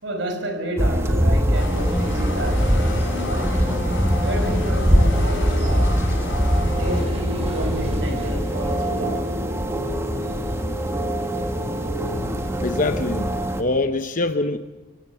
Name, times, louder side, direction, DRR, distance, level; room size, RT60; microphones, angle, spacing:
voice 1, 0.0-6.2 6.7-9.3, equal, 75° right, 5 dB, 4.9 m, -31 dB
sound 1, 0.8-13.6, equal, 15° right, 1.5 m, -22 dB
sound 2, 1.5-7.0, left 2 dB, 85° left, 7.1 m, -31 dB
sound 3, 6.8-13.2, right 1 dB, 35° right, 6.6 m, -41 dB
voice 2, 12.6-13.3 13.6-14.6, left 2 dB, 45° left, 8 dB, 0.9 m, -23 dB
27.0 x 17.0 x 6.8 m, 1.1 s
head